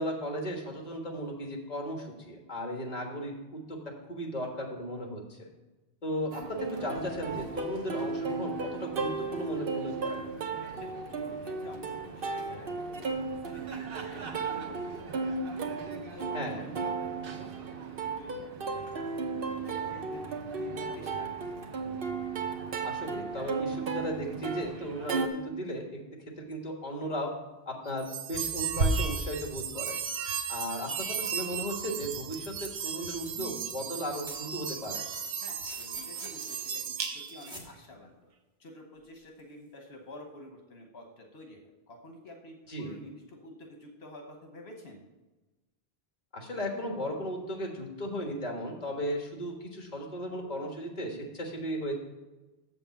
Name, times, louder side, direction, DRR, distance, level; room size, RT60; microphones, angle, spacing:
voice 1, 0.0-3.8 4.1-5.5 6.0-10.2 16.3-16.7 22.8-26.0 26.4-27.3 27.6-30.0 30.5-30.9 31.2-35.0 42.7-42.9 46.3-51.9, equal, 40° left, 1 dB, 1.7 m, -36 dB
voice 2, 6.2-6.6 10.7-18.6 18.9-21.6 35.4-38.2 38.6-41.6 41.9-45.0, left 1 dB, 75° left, 2 dB, 1.3 m, -50 dB
Plucked string instrument, 6.3-25.3, right 4 dB, 60° right, 1.0 m, -35 dB
sound 1, 28.0-37.5, right 5 dB, 85° right, 1.1 m, -34 dB
sound 2, 33.0-33.7 33.9-37.7 39.4-39.5, equal, 5° right, 1.4 m, -49 dB
7.4 x 5.4 x 6.9 m, 1.1 s
omnidirectional pair, 1.1 m